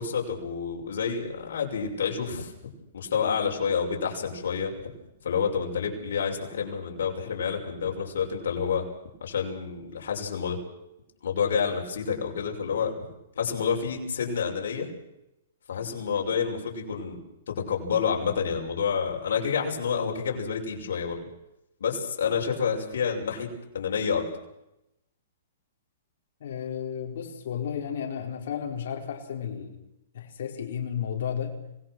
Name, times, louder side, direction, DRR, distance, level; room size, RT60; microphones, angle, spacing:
voice 1, 0.0-4.7 5.2-8.9 9.2-10.6 11.2-12.9 13.4-14.9 15.7-17.2 17.5-21.3 21.8-23.5 23.7-24.2, left 6 dB, 80° left, 0 dB, 6.3 m, -29 dB
voice 2, 26.4-29.8 30.1-31.6, left 8 dB, 60° left, 1 dB, 4.6 m, -33 dB
26.5 x 19.0 x 6.3 m, 0.86 s
hypercardioid pair, 165°, 0 cm